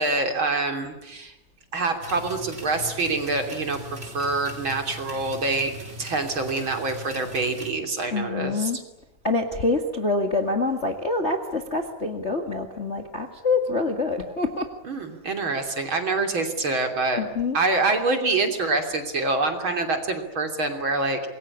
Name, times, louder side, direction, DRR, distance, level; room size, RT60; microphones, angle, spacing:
voice 1, 0.0-1.3 1.7-8.7 14.8-17.2 17.5-21.3, right 3 dB, 40° right, 5 dB, 3.6 m, -26 dB
sound 1, 2.0-7.7, equal, 20° right, 4.0 m, -40 dB
voice 2, 8.1-8.8 9.2-14.7 17.2-17.6, left 3 dB, 25° left, 4 dB, 1.8 m, -26 dB
27.0 x 22.0 x 9.9 m, 0.90 s
omnidirectional pair, 3.6 m